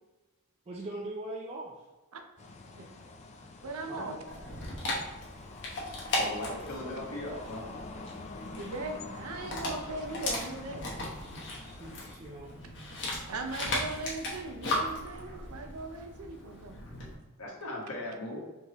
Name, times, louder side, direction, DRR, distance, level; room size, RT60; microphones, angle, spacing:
voice 1, 0.7-1.9 3.9-4.1 11.6-12.6, right 2 dB, 30° right, -3 dB, 0.5 m, -41 dB
sound 1, 2.4-12.1, left 3 dB, 30° left, 0.4 m, -46 dB
voice 2, 3.6-4.2 8.6-10.9 13.3-16.8, right 2 dB, 75° right, 5 dB, 0.6 m, -39 dB
Dog, 4.3-17.2, left 1 dB, 55° left, 1.1 m, -37 dB
voice 3, 6.2-7.6 17.4-18.4, left 1 dB, 90° left, -3 dB, 1.5 m, -38 dB
4.4 x 3.3 x 3.0 m, 1.2 s
head